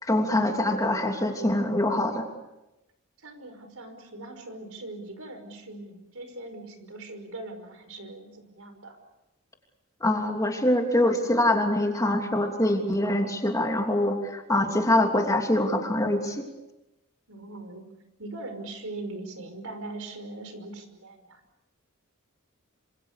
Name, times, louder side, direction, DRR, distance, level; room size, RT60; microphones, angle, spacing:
voice 1, 0.0-2.2 10.0-16.4, left 1 dB, 15° left, 2 dB, 3.1 m, -24 dB
voice 2, 3.2-9.0 17.3-17.9 18.2-21.4, right 2 dB, 70° right, 8 dB, 5.5 m, -41 dB
27.0 x 26.5 x 6.8 m, 0.97 s
head